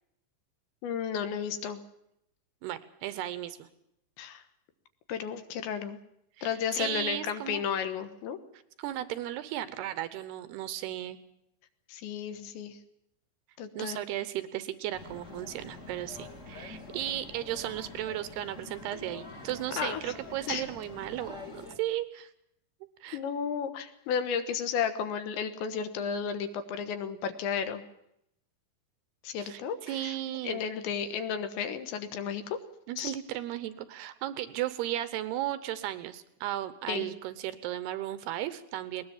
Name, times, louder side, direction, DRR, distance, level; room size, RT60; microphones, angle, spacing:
voice 1, 0.8-1.8 4.2-4.4 5.1-6.0 6.4-8.4 11.9-12.8 13.6-14.0 19.8-20.1 20.5-20.6 23.1-27.8 29.2-30.2 30.4-32.6 33.0-33.1 36.9-37.1, left 7 dB, 70° left, 9 dB, 3.4 m, -33 dB
voice 2, 2.6-3.7 6.4-7.6 8.8-11.2 13.7-22.3 23.0-23.2 29.4-30.6 32.9-39.0, right 13 dB, 75° right, 13 dB, 2.5 m, -35 dB
sound 1, 14.9-21.8, left 3 dB, 25° left, 1.7 m, -46 dB
20.5 x 20.0 x 7.3 m, 0.78 s
omnidirectional pair, 5.7 m